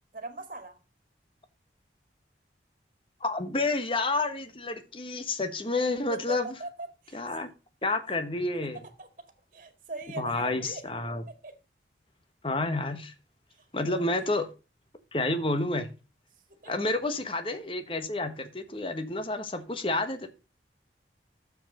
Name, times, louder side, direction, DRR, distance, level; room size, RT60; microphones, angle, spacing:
voice 1, 0.1-0.8 6.1-7.2 9.0-9.1 9.5-10.8 11.3-11.5 13.5-14.2 16.6-16.9, right 3 dB, 45° right, 2.0 m, -41 dB
voice 2, 3.2-6.4 7.1-7.5 7.8-8.8 10.2-11.2 12.4-13.1 13.7-14.5 15.1-15.9 16.7-20.3, left 2 dB, 30° left, 1.2 m, -29 dB
7.4 x 7.2 x 5.0 m
head